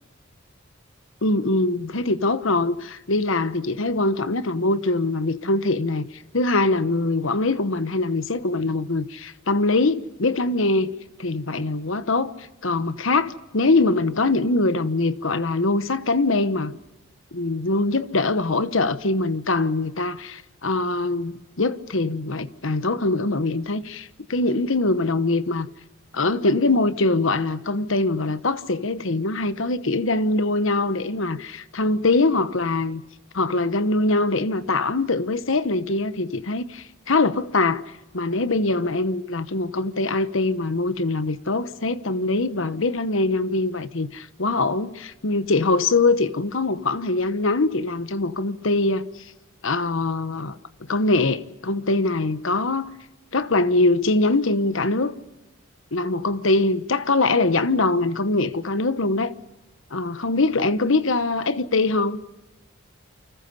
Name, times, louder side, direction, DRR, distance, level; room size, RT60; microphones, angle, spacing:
voice 1, 1.2-10.9 11.2-12.3 12.6-16.8 17.3-25.7 26.1-33.0 33.3-37.8 38.1-49.1 49.6-50.6 50.9-52.9 53.3-55.1 55.9-59.3 59.9-62.2, left 2 dB, 70° left, 1.1 m, -23 dB
29.0 x 25.0 x 5.5 m
head